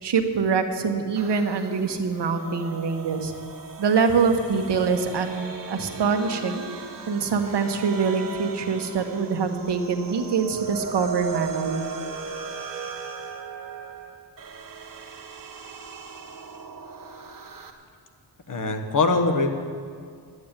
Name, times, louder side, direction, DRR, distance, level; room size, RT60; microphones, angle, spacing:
voice 1, 0.0-3.3 3.8-11.9, right 5 dB, 85° right, 6 dB, 1.3 m, -24 dB
sound 1, 1.2-17.7, right 5 dB, 55° right, 1.3 m, -37 dB
voice 2, 18.5-19.6, left 3 dB, 50° left, 5 dB, 1.3 m, -22 dB
12.0 x 9.5 x 8.9 m, 2.2 s
wide cardioid pair, 130°, 40 cm